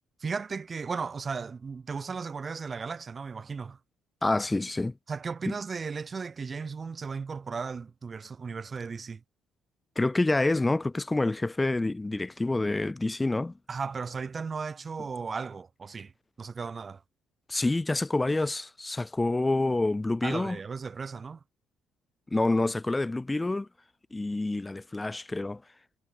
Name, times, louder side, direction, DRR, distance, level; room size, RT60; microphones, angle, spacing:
voice 1, 0.2-3.8 5.1-9.2 13.7-16.1 16.4-17.0 20.2-21.4, right 5 dB, 35° right, 2.1 m, -35 dB
voice 2, 4.2-4.9 5.5-5.6 10.0-13.5 17.5-20.6 22.3-23.7 24.1-25.6, left 2 dB, 15° left, 2.7 m, -27 dB
figure-of-eight pair, 45°, 0 cm